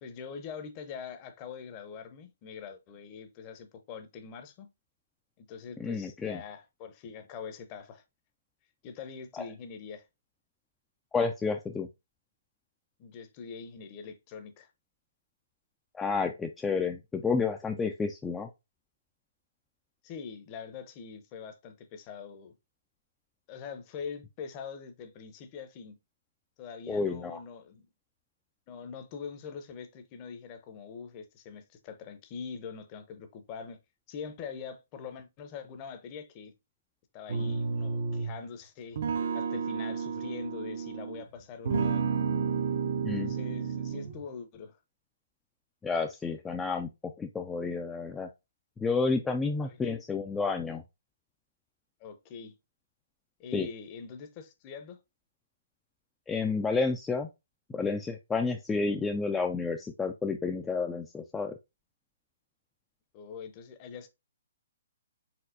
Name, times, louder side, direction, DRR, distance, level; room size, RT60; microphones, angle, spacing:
voice 1, 0.0-4.7 5.4-8.0 8.8-10.1 13.0-14.7 20.0-22.5 23.5-26.0 26.6-27.9 28.7-33.8 34.1-36.5 37.1-39.0 39.3-42.0 43.2-44.8 49.6-50.0 52.0-52.5 53.4-55.0 63.1-64.1, left 6 dB, 30° left, 0.7 m, -43 dB
voice 2, 5.8-6.4 9.4-9.5 11.1-11.9 15.9-18.5 26.9-27.4 43.0-43.3 45.8-46.9 47.2-48.3 48.8-50.8 53.5-53.7 56.3-57.3 57.7-61.6, left 4 dB, 10° left, 0.3 m, -30 dB
sound 1, 37.3-38.4 39.0-41.2 41.6-44.2, right 5 dB, 55° right, 0.6 m, -31 dB
4.3 x 3.8 x 2.6 m
figure-of-eight pair, 130°, 0 cm